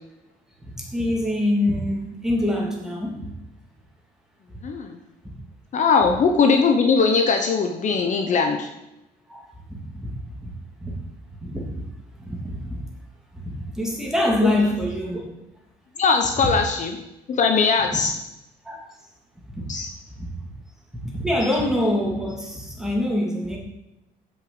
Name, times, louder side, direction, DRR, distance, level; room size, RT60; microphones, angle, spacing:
voice 1, 0.8-3.3 5.2-5.3 9.3-9.4 9.7-10.1 10.4-10.5 10.8-10.9 11.4-11.9 12.2-12.8 13.3-15.2 16.4-16.5 17.8-17.9 18.6-18.9 19.5-19.7 20.1-20.3 21.0-23.6, left 1 dB, 5° right, -2 dB, 2.8 m, -25 dB
voice 2, 4.6-5.0 5.7-8.7 14.4-14.5 16.0-17.0 17.3-18.1 19.7-19.9, left 5 dB, 45° left, 4 dB, 1.1 m, -20 dB
7.5 x 6.4 x 7.0 m, 0.90 s
cardioid pair, 110°, 17 cm